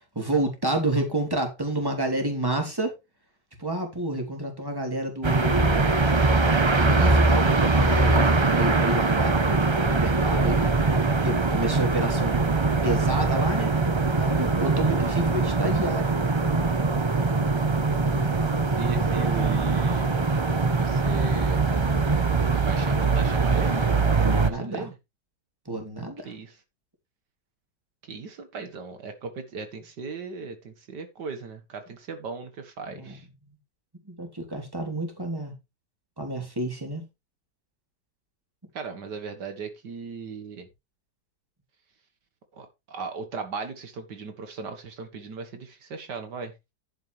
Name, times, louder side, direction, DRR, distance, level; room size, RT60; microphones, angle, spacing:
voice 1, 0.0-2.9 3.6-6.0 6.7-10.7 11.2-12.4 12.8-13.7 14.2-16.1 24.2-24.9 25.6-26.3 32.9-33.2 34.0-35.5 36.2-37.0, right 1 dB, 10° right, 3.2 m, -29 dB
sound 1, 5.2-24.5, right 3 dB, 30° right, 0.5 m, -22 dB
voice 2, 18.8-20.1 20.7-21.6 22.5-23.9 24.3-24.9 26.3-26.6 28.1-33.3 38.7-40.7 42.5-46.5, right 4 dB, 75° right, 2.1 m, -37 dB
11.0 x 9.3 x 3.3 m
omnidirectional pair, 1.8 m